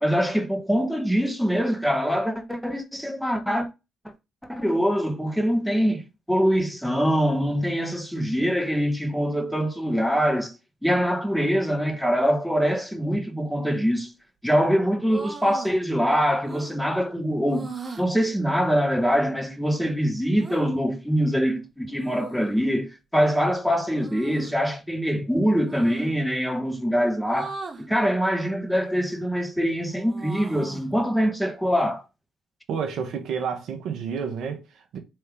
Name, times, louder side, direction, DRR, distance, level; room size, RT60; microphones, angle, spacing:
voice 1, 0.0-3.7 4.5-6.0 6.3-10.5 10.8-14.1 14.4-32.0, equal, ahead, 1.0 m, -24 dB
sound 1, 15.0-15.8 16.4-16.8 17.5-18.1 20.4-20.6 22.0-22.6 23.9-24.5 25.7-26.1 27.3-27.9 28.7-29.2 29.6-30.9, right 4 dB, 35° right, 0.9 m, -39 dB
voice 2, 32.7-35.0, right 6 dB, 70° right, 0.8 m, -30 dB
3.4 x 3.4 x 3.3 m
hypercardioid pair, 50°, 0 cm